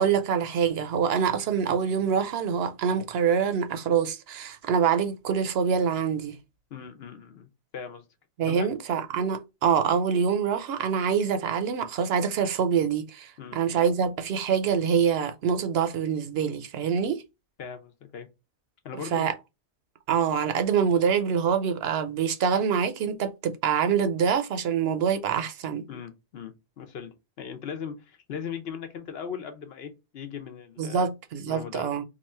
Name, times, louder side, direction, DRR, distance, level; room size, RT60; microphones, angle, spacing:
voice 1, 0.0-6.4 8.4-17.2 19.1-19.3 20.1-25.8 30.8-32.0, right 7 dB, 70° right, 0.8 m, -25 dB
voice 2, 6.7-8.0 8.5-8.7 13.4-13.6 17.6-18.3 18.8-19.3 25.9-31.1 31.5-31.9, left 7 dB, 70° left, 1.0 m, -39 dB
2.9 x 2.4 x 4.2 m
omnidirectional pair, 1.1 m